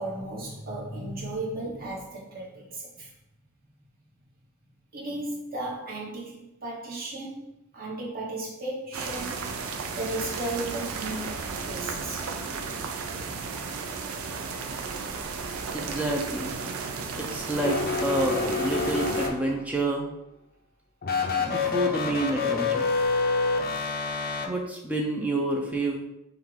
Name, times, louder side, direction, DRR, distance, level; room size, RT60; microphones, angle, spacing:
voice 1, 0.0-3.1 4.9-9.6 10.0-12.3, right 2 dB, 45° right, -4 dB, 1.2 m, -35 dB
sound 1, 8.9-19.3, right 4 dB, 85° right, 0.5 m, -34 dB
voice 2, 15.7-16.6 17.2-20.1 21.4-22.9 24.5-26.0, right 2 dB, 5° right, 0 dB, 0.4 m, -29 dB
sound 2, 17.6-19.8 21.0-24.5, left 4 dB, 45° left, 0.5 m, -27 dB
5.6 x 2.3 x 3.3 m, 0.85 s
head